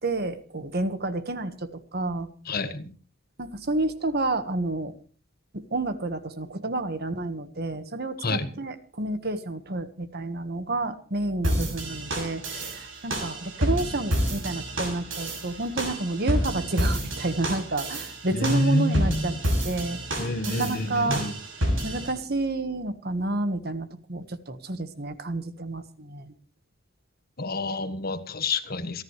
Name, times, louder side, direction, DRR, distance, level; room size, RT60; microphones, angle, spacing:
voice 1, 0.0-2.3 3.4-4.9 5.5-19.3 19.6-20.0 20.5-21.2 21.8-26.3, right 2 dB, 55° right, 11 dB, 1.5 m, -30 dB
voice 2, 2.5-2.9 8.2-8.5 18.3-19.2 20.2-21.3 27.4-29.0, left 2 dB, 50° left, 11 dB, 1.5 m, -27 dB
sound 1, 11.4-22.1, equal, 75° right, 6.5 m, -29 dB
28.0 x 10.5 x 3.2 m, 0.40 s
head